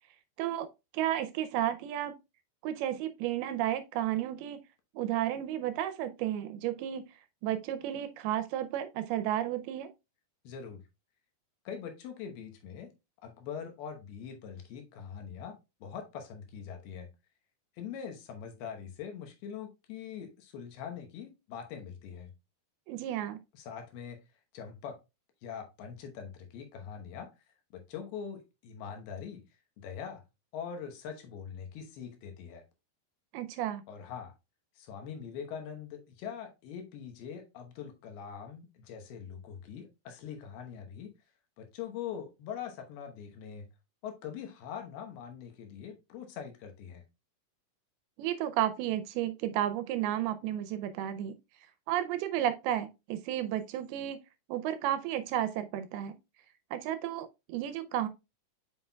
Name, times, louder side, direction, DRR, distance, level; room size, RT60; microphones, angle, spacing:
voice 1, 0.9-2.1 2.6-4.6 5.0-7.0 7.4-9.9 22.9-23.4 33.3-33.8 48.2-51.4 51.9-54.2 54.5-56.2 56.7-58.1, right 12 dB, 80° right, 2.3 m, -32 dB
voice 2, 10.4-10.8 11.7-12.9 13.2-17.1 17.8-22.3 23.5-24.2 24.5-25.0 25.4-27.3 27.7-29.4 29.8-30.2 30.5-32.6 33.9-34.3 34.8-41.1 41.6-43.7 44.0-47.0, left 7 dB, 75° left, 2.9 m, -43 dB
7.8 x 5.5 x 2.2 m
omnidirectional pair, 4.7 m